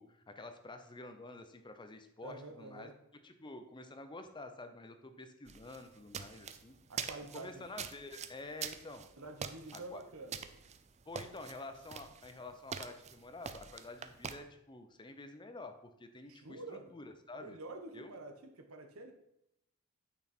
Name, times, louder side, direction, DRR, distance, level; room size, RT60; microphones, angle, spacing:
voice 1, 0.0-2.9 3.2-6.7 7.3-9.1 9.7-10.0 11.1-17.6 17.9-18.1, left 2 dB, 20° left, 8 dB, 0.7 m, -49 dB
voice 2, 2.2-2.9 6.9-7.7 9.2-10.6 16.3-16.9 17.4-19.1, right 2 dB, 80° right, 5 dB, 1.1 m, -48 dB
sound 1, 5.5-14.4, right 7 dB, 30° right, 0.5 m, -45 dB
9.0 x 6.2 x 4.4 m, 0.79 s
head